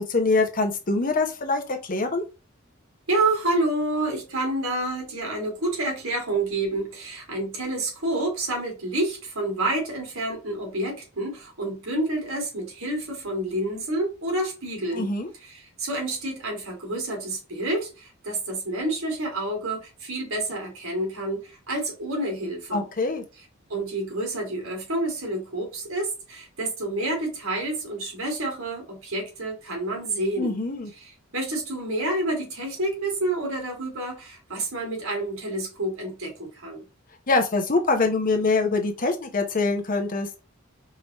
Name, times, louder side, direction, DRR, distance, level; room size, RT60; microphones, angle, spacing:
voice 1, 0.0-2.2 14.9-15.3 22.7-23.2 30.4-30.9 37.3-40.3, left 3 dB, 40° left, 0.8 m, -24 dB
voice 2, 3.1-15.1 15.4-22.9 23.7-30.6 31.0-36.8, right 2 dB, 80° right, 2.0 m, -29 dB
4.9 x 2.9 x 2.9 m
head